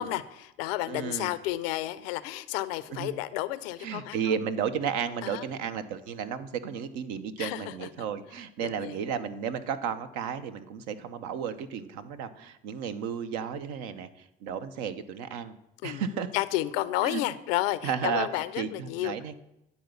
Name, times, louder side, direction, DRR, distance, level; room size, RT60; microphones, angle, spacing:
voice 1, 0.0-4.3 5.2-5.5 7.4-7.9 8.6-9.0 15.8-16.0 16.3-19.1, left 15 dB, 80° left, 16 dB, 0.5 m, -31 dB
voice 2, 0.9-1.3 3.0-3.1 3.8-15.6 15.8-16.3 17.0-17.2 17.8-19.4, right 7 dB, 70° right, 10 dB, 0.7 m, -33 dB
9.4 x 4.0 x 6.8 m, 0.86 s
hypercardioid pair, 60°, 29 cm